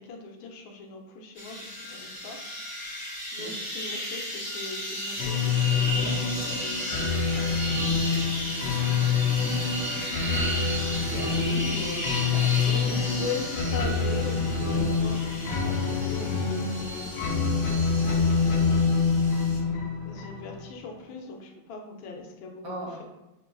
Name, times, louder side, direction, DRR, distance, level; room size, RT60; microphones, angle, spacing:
voice 1, 0.0-2.4 2.8-3.1 3.3-6.9 7.4-7.7 13.2-18.9 20.0-22.6, left 4 dB, 90° left, 2 dB, 1.4 m, -40 dB
sound 1, 1.4-19.6, equal, 25° left, 1.2 m, -35 dB
sound 2, 5.2-20.7, left 5 dB, 70° left, 1.1 m, -26 dB
voice 2, 8.7-9.7 10.2-10.7 10.9-13.4 19.6-19.8 22.6-23.0, right 1 dB, 65° right, -3 dB, 1.5 m, -39 dB
6.5 x 2.2 x 2.4 m, 1.0 s
omnidirectional pair, 2.1 m